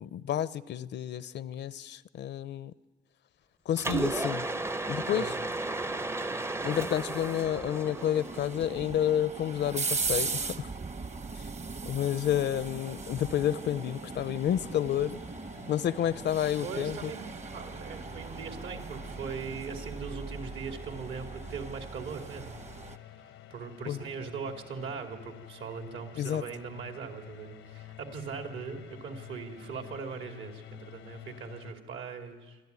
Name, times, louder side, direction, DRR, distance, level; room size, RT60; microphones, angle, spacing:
voice 1, 0.0-2.7 3.7-4.5 4.9-5.3 6.6-10.7 11.9-15.2 15.7-17.1 23.9-24.0 26.2-26.4, left 10 dB, 60° left, 17 dB, 0.6 m, -30 dB
Mechanisms, 3.8-8.9, right 3 dB, 15° right, 0.6 m, -34 dB
sound 1, 6.5-23.0, right 4 dB, 35° right, 1.0 m, -39 dB
sound 2, 12.3-31.7, left 12 dB, 85° left, 0.9 m, -50 dB
voice 2, 16.6-22.6 23.5-32.6, right 5 dB, 75° right, 4 dB, 2.8 m, -40 dB
25.5 x 13.0 x 9.5 m, 1.3 s
cardioid pair, 90°, 20 cm